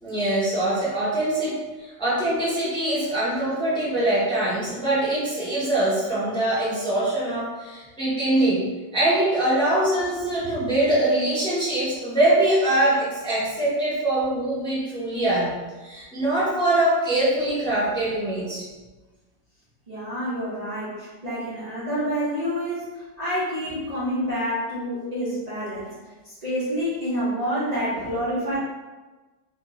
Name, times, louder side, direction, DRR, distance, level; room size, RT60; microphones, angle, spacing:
voice 1, 0.0-8.7 8.9-15.5 15.8-18.6, right 1 dB, 5° left, -9 dB, 0.5 m, -23 dB
voice 2, 19.9-25.9 26.2-28.6, equal, 65° right, -11 dB, 0.4 m, -28 dB
2.9 x 2.7 x 3.0 m, 1.2 s
omnidirectional pair, 1.9 m